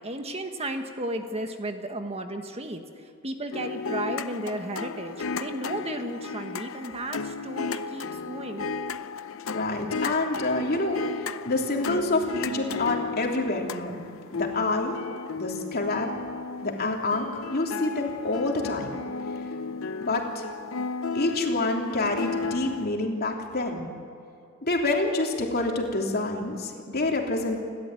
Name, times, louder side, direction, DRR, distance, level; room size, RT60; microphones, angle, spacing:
voice 1, 0.0-8.7, right 1 dB, 30° right, 6 dB, 1.4 m, -34 dB
sound 1, 3.5-22.9, left 4 dB, 75° left, 0.7 m, -34 dB
voice 2, 9.5-14.0 14.3-15.0 15.3-16.1 16.6-18.9 20.0-20.4 21.1-23.9 24.6-27.6, left 2 dB, 50° left, 1 dB, 3.2 m, -27 dB
30.0 x 13.0 x 9.1 m, 2.5 s
head